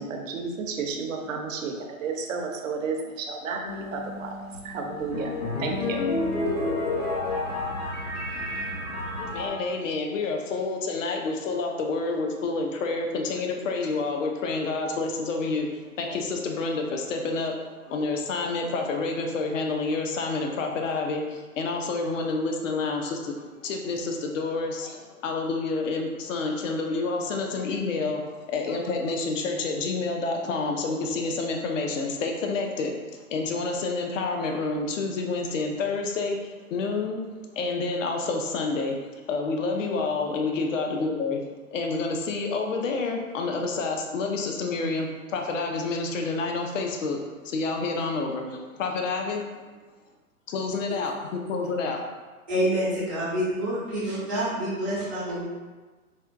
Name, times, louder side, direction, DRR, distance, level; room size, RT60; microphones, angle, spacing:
voice 1, 0.0-4.3 4.6-5.3 5.6-6.0, right 4 dB, 60° right, 3 dB, 0.6 m, -32 dB
sound 1, 3.6-9.5, left 2 dB, 80° left, 1.3 m, -30 dB
voice 2, 9.2-15.7 16.0-17.6 17.8-28.2 28.5-36.4 36.7-37.2 37.5-39.0 39.3-41.4 41.7-47.2 47.4-49.4 50.5-52.0, left 3 dB, 60° left, 2 dB, 0.6 m, -28 dB
voice 3, 52.5-55.4, right 1 dB, 10° right, -17 dB, 0.3 m, -27 dB
4.3 x 2.2 x 2.4 m, 1.3 s
hypercardioid pair, 145°, 44 cm